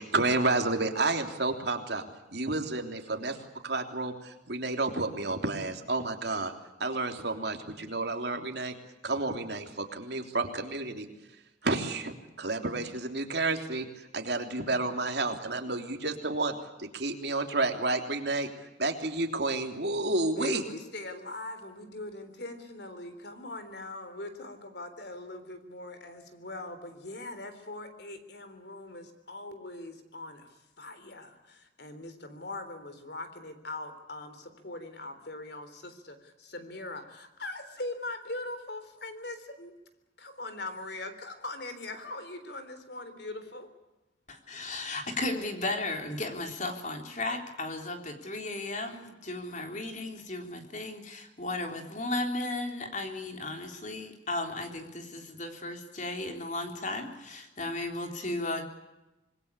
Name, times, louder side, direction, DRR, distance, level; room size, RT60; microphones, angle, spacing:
voice 1, 0.0-2.0 2.3-3.4 3.6-6.5 6.8-8.7 9.0-11.0 11.6-13.9 14.1-18.5 18.8-20.6, right 2 dB, 60° right, 4 dB, 3.4 m, -30 dB
voice 2, 20.4-30.5 30.8-39.7 40.2-43.7, left 2 dB, 60° left, 9 dB, 3.7 m, -41 dB
voice 3, 44.3-58.7, left 2 dB, 40° left, 4 dB, 3.6 m, -35 dB
26.5 x 21.0 x 8.5 m, 1.0 s
head